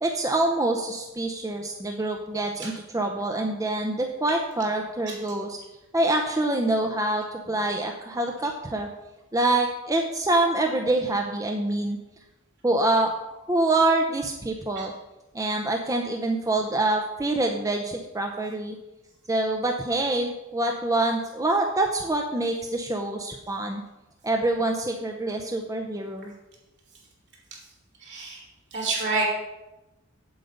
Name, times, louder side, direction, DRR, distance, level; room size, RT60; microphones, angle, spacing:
voice 1, 0.0-5.6 5.9-8.9 9.3-12.0 12.6-13.1 13.5-14.9 15.3-18.8 19.3-23.8 24.2-26.3, right 2 dB, 15° right, 3 dB, 0.6 m, -25 dB
voice 2, 28.0-28.4 28.7-29.2, right 3 dB, 60° right, -3 dB, 3.5 m, -28 dB
8.2 x 7.9 x 5.2 m, 1.0 s
head